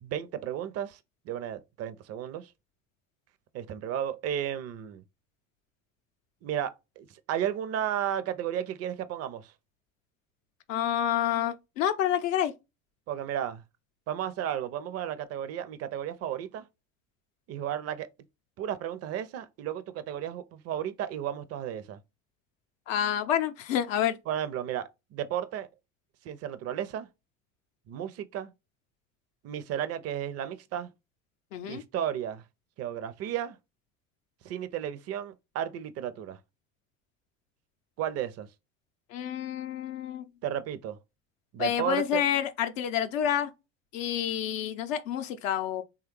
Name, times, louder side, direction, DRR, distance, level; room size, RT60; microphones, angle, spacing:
voice 1, 0.0-1.0 1.3-2.5 3.5-5.0 6.4-9.5 13.1-13.6 14.1-16.7 17.5-18.1 18.6-22.0 24.3-25.7 26.2-27.1 27.9-28.5 29.4-30.9 31.7-32.4 32.8-33.6 34.4-36.4 38.0-38.5 40.4-41.0 41.5-42.2, right 10 dB, 40° right, 0.5 m, -33 dB
voice 2, 10.7-12.5 22.9-24.2 31.5-31.8 39.1-40.2 41.6-43.5 43.9-45.8, left 10 dB, 70° left, 0.6 m, -28 dB
3.2 x 2.3 x 3.0 m
hypercardioid pair, 70°, 40 cm